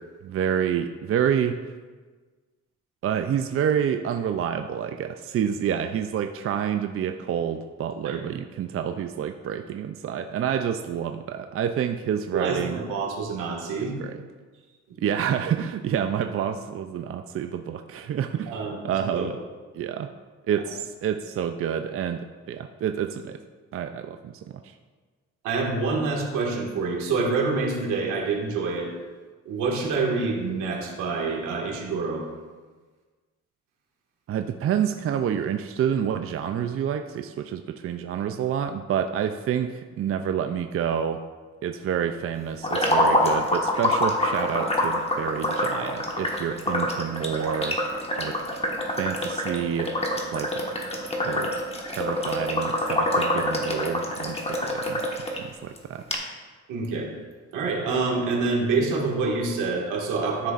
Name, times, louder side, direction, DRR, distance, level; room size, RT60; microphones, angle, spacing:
voice 1, 0.2-1.7 3.0-12.8 13.8-14.2 15.0-18.5 18.8-19.4 19.7-20.1 20.5-23.4 23.7-24.7 34.3-41.2 41.6-47.8 48.2-48.3 48.8-49.9 50.3-50.5 51.2-51.5 51.9-55.0 55.4-56.0, right 8 dB, 50° right, 7 dB, 0.5 m, -28 dB
voice 2, 12.3-13.9 18.5-18.8 19.1-19.3 25.4-28.9 29.5-32.2 56.7-57.1 57.5-60.5, right 4 dB, 85° right, -1 dB, 1.9 m, -26 dB
sound 1, 42.6-55.4 55.8-55.9 56.1-56.2, left 1 dB, 20° left, 1.4 m, -26 dB
12.5 x 6.6 x 2.5 m, 1.4 s
cardioid pair, 90°, 30 cm